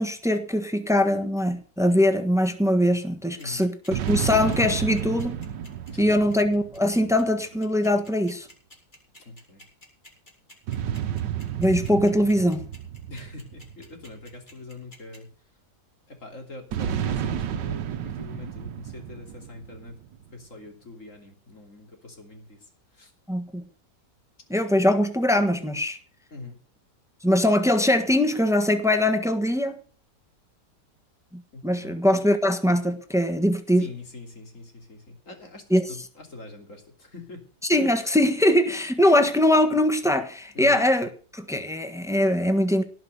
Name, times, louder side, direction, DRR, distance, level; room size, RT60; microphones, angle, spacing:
voice 1, 0.0-5.4 6.0-8.5 11.6-12.6 23.3-23.6 24.5-26.0 27.2-29.8 31.3-33.9 35.7-35.9 37.7-42.8, left 1 dB, ahead, 1.2 m, -22 dB
voice 2, 3.4-3.7 5.9-6.4 9.2-9.6 13.1-15.3 16.1-20.0 20.3-23.1 26.3-26.6 31.5-32.1 33.8-37.4 40.5-40.8, left 3 dB, 45° left, 3.4 m, -43 dB
sound 1, 3.4-15.2, left 1 dB, 25° left, 4.6 m, -50 dB
sound 2, 3.9-7.5 10.7-14.3 16.7-20.1, right 9 dB, 85° right, 1.5 m, -31 dB
17.5 x 6.1 x 7.9 m
omnidirectional pair, 1.9 m